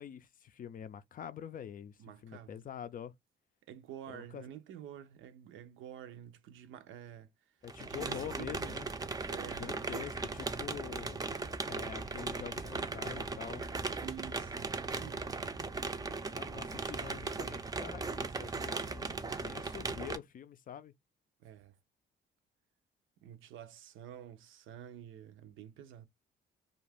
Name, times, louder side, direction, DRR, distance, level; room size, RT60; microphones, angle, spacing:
voice 1, 0.0-3.1 4.1-4.5 7.6-8.9 9.6-11.2 11.6-13.7 16.3-20.9, left 9 dB, 45° left, 0.4 m, -46 dB
voice 2, 2.0-2.7 3.6-7.3 7.9-8.8 9.3-9.9 14.0-15.4 21.4-21.8 23.2-26.1, right 10 dB, 80° right, 0.6 m, -49 dB
sound 1, 7.7-20.2, right 3 dB, 20° right, 0.4 m, -38 dB
2.5 x 2.4 x 3.3 m
cardioid pair, 90°, 20 cm